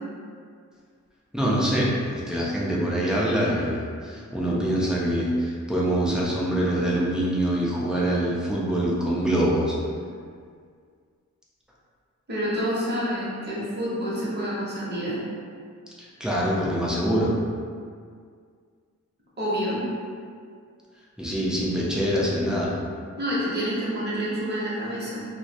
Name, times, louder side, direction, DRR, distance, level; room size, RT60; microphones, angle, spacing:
voice 1, 1.3-9.7 16.0-17.3 21.2-22.7, right 1 dB, ahead, -7 dB, 0.3 m, -24 dB
voice 2, 12.3-15.2 19.4-19.8 23.2-25.2, equal, 35° right, -8 dB, 0.7 m, -28 dB
2.5 x 2.0 x 2.7 m, 2.1 s
wide cardioid pair, 175°, 30 cm